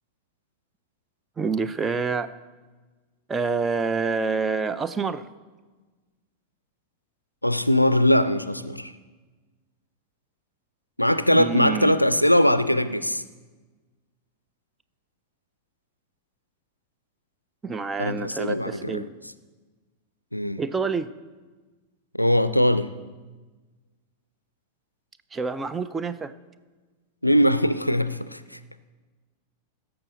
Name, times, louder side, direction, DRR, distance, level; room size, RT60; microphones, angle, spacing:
voice 1, 1.4-2.3 3.3-5.2 11.3-12.1 17.6-19.1 20.6-21.1 25.3-26.3, right 4 dB, 15° right, 12 dB, 0.4 m, -27 dB
voice 2, 7.4-8.9 11.0-13.2 18.0-19.1 20.3-20.6 22.1-22.9 27.2-28.6, left 1 dB, 90° left, 14 dB, 0.4 m, -21 dB
16.5 x 7.0 x 3.9 m, 1.3 s
figure-of-eight pair, 90°, 0 cm